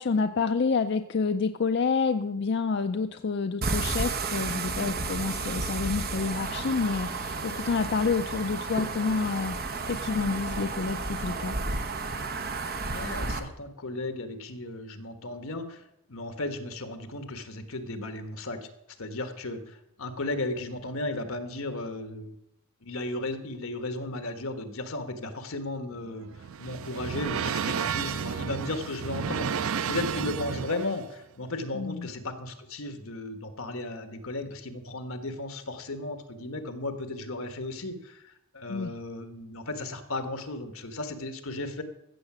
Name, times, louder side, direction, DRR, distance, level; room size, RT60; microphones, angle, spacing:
voice 1, 0.0-9.6 9.9-11.6 31.7-32.1 38.7-38.9, left 4 dB, 55° left, 8 dB, 0.4 m, -28 dB
sound 1, 3.6-13.4, right 3 dB, 45° right, 1.0 m, -32 dB
voice 2, 12.9-15.8 16.1-18.7 19.0-22.3 22.8-41.8, left 2 dB, 75° left, 8 dB, 1.4 m, -35 dB
sound 2, 25.9-31.0, right 7 dB, 75° right, 0.4 m, -32 dB
15.0 x 7.5 x 6.1 m, 0.81 s
head